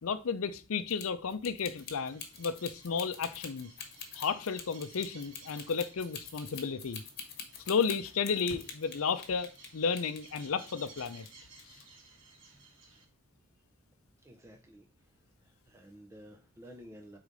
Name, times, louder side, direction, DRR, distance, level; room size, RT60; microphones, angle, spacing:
voice 1, 0.0-3.7 4.2-7.0 7.7-11.3, left 5 dB, 80° left, 0.5 m, -33 dB
sound 1, 0.9-9.7 10.0-11.3 11.6-11.8, left 7 dB, 45° left, 1.1 m, -44 dB
sound 2, 1.7-13.0, right 3 dB, 60° right, 1.5 m, -56 dB
voice 2, 14.2-14.9 15.4-17.2, equal, 15° right, 0.5 m, -52 dB
4.9 x 3.8 x 5.2 m
head